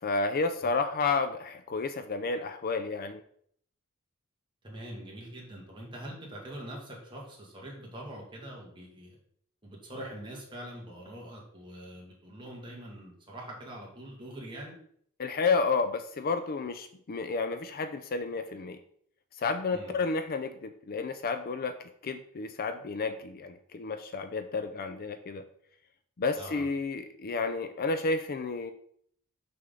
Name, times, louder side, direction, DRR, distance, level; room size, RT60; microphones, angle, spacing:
voice 1, 0.0-3.2 15.2-18.8 19.4-25.5 26.2-28.7, left 4 dB, 45° left, 10 dB, 0.4 m, -31 dB
voice 2, 4.6-9.2 9.6-14.8 19.7-19.9 26.4-26.6, right 1 dB, 20° right, -3 dB, 2.1 m, -44 dB
6.3 x 6.0 x 3.8 m, 0.64 s
head